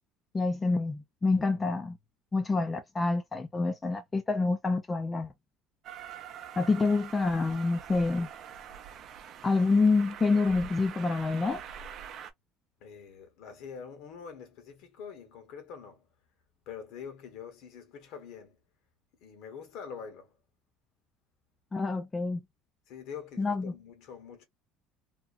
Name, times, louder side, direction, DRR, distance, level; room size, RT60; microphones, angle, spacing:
voice 1, 0.3-2.0 2.3-5.3 6.6-8.3 9.4-11.6 21.7-22.4 23.4-23.7, left 3 dB, 20° left, 0.4 m, -27 dB
Train, 5.8-12.3, right 8 dB, 50° right, 0.5 m, -44 dB
voice 2, 12.8-16.1 16.7-18.6 19.2-20.4 22.9-24.4, left 7 dB, 70° left, 1.1 m, -45 dB
2.7 x 2.2 x 2.4 m
cardioid pair, 130°, 0 cm